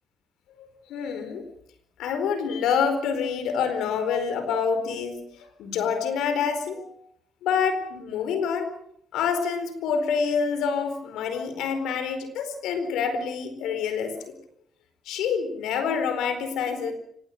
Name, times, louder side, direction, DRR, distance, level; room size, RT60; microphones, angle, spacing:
voice 1, 0.6-1.4 2.0-7.1 7.4-8.7 9.1-14.1 15.1-16.9, left 6 dB, 85° left, 10 dB, 4.4 m, -27 dB
25.5 x 21.5 x 6.6 m, 0.66 s
supercardioid pair, 60°, 0 cm